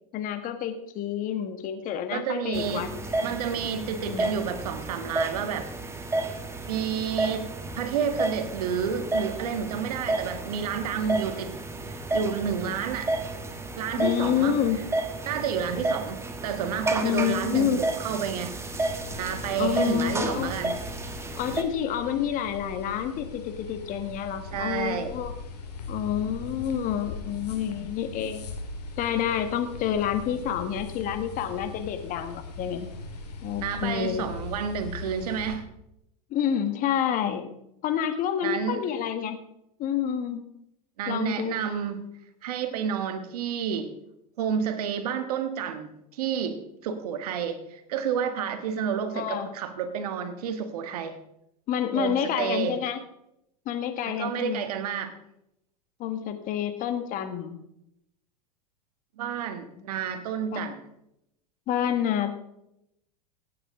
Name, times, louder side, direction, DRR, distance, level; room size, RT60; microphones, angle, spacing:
voice 1, 0.1-3.4 3.7-4.3 14.0-14.8 17.0-17.8 19.6-20.5 21.4-25.3 25.9-28.5 29.0-32.9 33.4-34.3 36.3-37.5 37.8-39.4 39.8-40.4 41.1-41.7 49.1-49.5 51.7-53.0 53.6-54.6 56.0-57.6 60.5-60.7 61.7-62.3, left 9 dB, 45° left, 9 dB, 1.6 m, -28 dB
voice 2, 2.1-2.9 3.2-5.7 6.7-7.5 7.7-11.6 11.9-13.1 13.8-14.6 15.2-18.6 19.2-20.8 24.5-25.1 33.6-35.7 38.4-38.8 41.0-42.1 42.4-43.9 44.4-51.1 51.9-52.8 54.1-55.1 59.2-60.8, right 7 dB, 70° right, 8 dB, 1.6 m, -30 dB
sound 1, 2.5-21.6, right 2 dB, 15° right, 1.5 m, -32 dB
sound 2, 18.7-35.6, left 3 dB, 90° left, 2.4 m, -40 dB
16.5 x 9.1 x 3.8 m, 0.81 s
hypercardioid pair, 100°, 20 cm